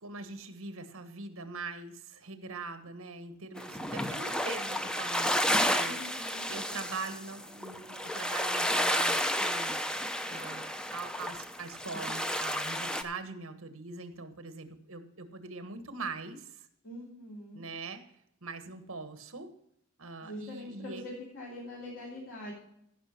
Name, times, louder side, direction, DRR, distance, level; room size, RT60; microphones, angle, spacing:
voice 1, 0.0-6.0 6.5-9.8 10.3-16.7 17.5-18.0 18.4-19.5 20.0-21.0, right 3 dB, 70° right, 9 dB, 1.4 m, -42 dB
sound 1, 3.6-13.0, equal, 5° left, 0.7 m, -31 dB
voice 2, 5.8-6.5 16.8-17.6 20.2-22.5, left 1 dB, 65° left, -6 dB, 3.4 m, -43 dB
15.5 x 5.9 x 5.8 m, 0.73 s
head